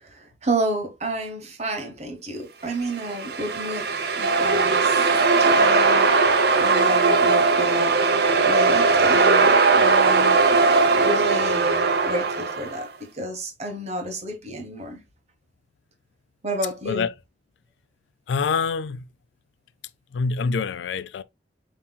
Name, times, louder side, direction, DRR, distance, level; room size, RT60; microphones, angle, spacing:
voice 1, 0.0-3.9 4.2-5.0 5.4-6.1 6.6-7.9 8.4-10.4 10.9-15.0 16.4-17.1, right 1 dB, 35° right, 1.1 m, -30 dB
sound 1, 2.9-12.8, right 4 dB, 60° right, 0.7 m, -19 dB
voice 2, 18.3-19.0 20.1-21.2, left 5 dB, 75° left, 0.3 m, -25 dB
7.1 x 2.9 x 2.3 m
head